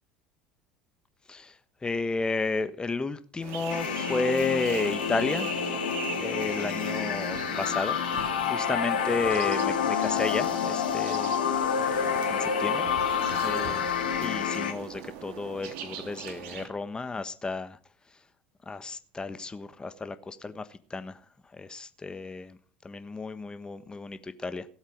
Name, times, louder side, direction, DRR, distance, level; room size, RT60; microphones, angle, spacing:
voice 1, 1.8-5.5 6.1-8.0 8.4-11.5 11.8-12.0 12.3-12.8 13.4-13.9 14.2-17.8 18.7-21.2 21.6-22.6 22.8-24.6, left 3 dB, 15° left, 1.2 m, -32 dB
sound 1, 3.4-16.7, right 8 dB, 60° right, 2.8 m, -41 dB
sound 2, 3.7-14.7, left 7 dB, 85° left, 2.4 m, -28 dB
17.0 x 8.1 x 6.4 m
hypercardioid pair, 75°, 5 cm